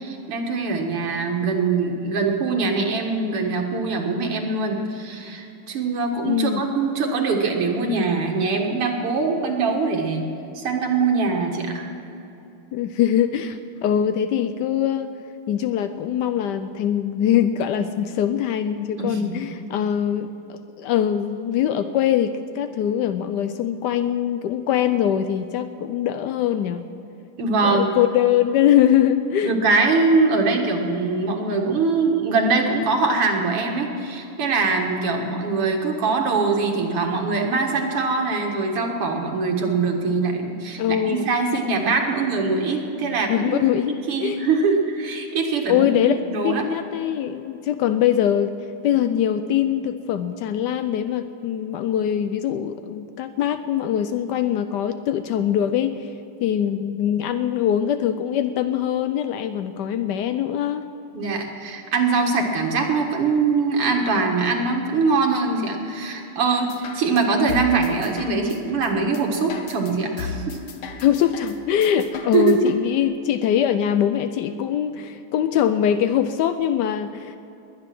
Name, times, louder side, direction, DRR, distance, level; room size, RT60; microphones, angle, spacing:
voice 1, 0.0-10.2 10.5-11.9 19.0-19.5 27.4-27.9 29.4-43.7 44.1-46.6 61.1-70.6 72.3-72.6, right 4 dB, 85° right, 1 dB, 2.5 m, -23 dB
voice 2, 6.3-6.6 12.7-15.1 15.5-26.9 27.6-29.5 40.8-41.3 43.3-44.4 45.7-48.5 48.8-56.1 56.4-60.9 71.0-77.4, left 10 dB, 85° left, 10 dB, 0.9 m, -22 dB
sound 1, 66.7-72.7, left 5 dB, 60° left, 1.6 m, -35 dB
20.5 x 9.7 x 6.0 m, 2.8 s
omnidirectional pair, 2.4 m